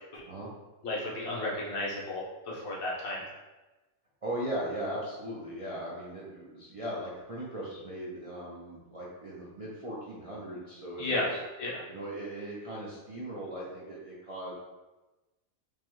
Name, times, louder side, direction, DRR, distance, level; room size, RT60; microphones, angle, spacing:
voice 1, 0.8-3.2 11.0-11.8, left 1 dB, 90° left, -5 dB, 1.4 m, -33 dB
voice 2, 4.2-11.4 11.9-14.5, right 1 dB, 45° right, -7 dB, 0.4 m, -38 dB
5.1 x 2.2 x 3.0 m, 1.1 s
omnidirectional pair, 1.5 m